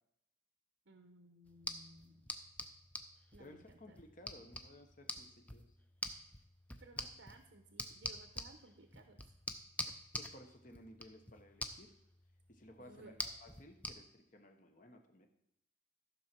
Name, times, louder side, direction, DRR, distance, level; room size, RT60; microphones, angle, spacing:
voice 1, 0.9-2.3 3.3-4.0 6.8-9.2 12.8-13.1, right 2 dB, 75° right, 6 dB, 0.8 m, -59 dB
sound 1, 1.5-14.0, left 1 dB, 10° left, 0.6 m, -47 dB
voice 2, 3.4-5.8 10.2-11.9 12.5-15.3, left 1 dB, 45° left, 5 dB, 1.1 m, -57 dB
14.5 x 6.2 x 4.5 m, 0.81 s
head